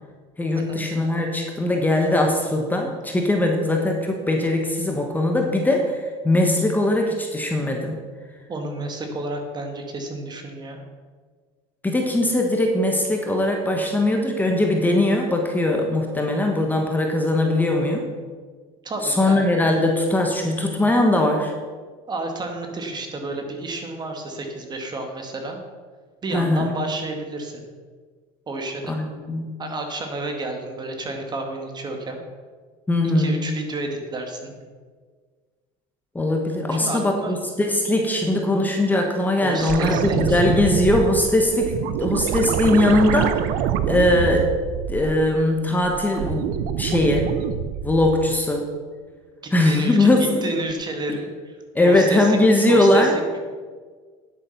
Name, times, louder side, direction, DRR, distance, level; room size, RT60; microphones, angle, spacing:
voice 1, 0.4-8.0 11.8-18.0 19.0-21.5 26.3-26.7 28.9-29.6 32.9-33.4 36.1-43.5 43.9-44.5 44.9-46.5 46.8-47.3 47.8-48.6 49.5-50.5 51.7-53.1, left 1 dB, 10° left, 2 dB, 1.3 m, -20 dB
voice 2, 8.5-10.8 18.8-19.5 22.1-25.6 26.2-27.6 28.5-28.9 29.6-32.2 33.0-34.5 36.8-37.4 39.4-40.4 49.4-50.1 50.4-51.6 51.8-53.4, right 2 dB, 25° right, 4 dB, 1.9 m, -31 dB
sound 1, 39.6-45.4 45.8-48.3 50.7-50.8, right 9 dB, 70° right, 0.8 m, -26 dB
10.0 x 8.4 x 5.9 m, 1.5 s
cardioid pair, 125°, 15 cm